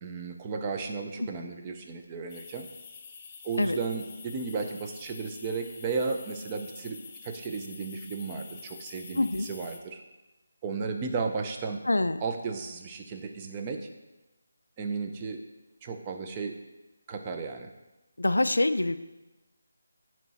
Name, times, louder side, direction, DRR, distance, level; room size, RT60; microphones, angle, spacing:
voice 1, 0.0-2.7 3.4-7.0 7.2-10.0 10.6-11.8 12.2-13.9 14.8-15.4 15.8-16.6 17.1-17.7, right 4 dB, 20° right, 4 dB, 0.5 m, -34 dB
sound 1, 2.3-9.8, left 5 dB, 25° left, 0.6 m, -47 dB
voice 2, 9.2-9.5 11.9-12.2 18.2-19.0, left 2 dB, 90° left, 11 dB, 0.3 m, -25 dB
8.8 x 3.1 x 4.1 m, 1.1 s
figure-of-eight pair, 165°, 0 cm